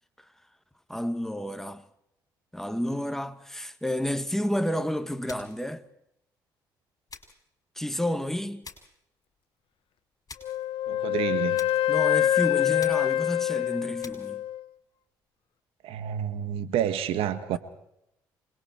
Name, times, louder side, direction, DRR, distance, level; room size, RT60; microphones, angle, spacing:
voice 1, 0.9-1.8 2.5-5.8 7.8-8.7 11.9-14.4 17.5-17.6, left 1 dB, 5° left, 2.0 m, -30 dB
sound 1, 5.3-5.7 7.1-7.5 8.6-9.0 10.3-10.7 11.6-11.9 12.8-13.2 14.0-14.4, left 4 dB, 35° left, 6.5 m, -47 dB
Wind instrument woodwind instrument, 10.4-14.6, left 13 dB, 60° left, 1.1 m, -25 dB
voice 2, 10.9-11.7 15.8-17.6, right 10 dB, 75° right, 1.9 m, -29 dB
28.5 x 21.5 x 4.7 m
hypercardioid pair, 55°, 10 cm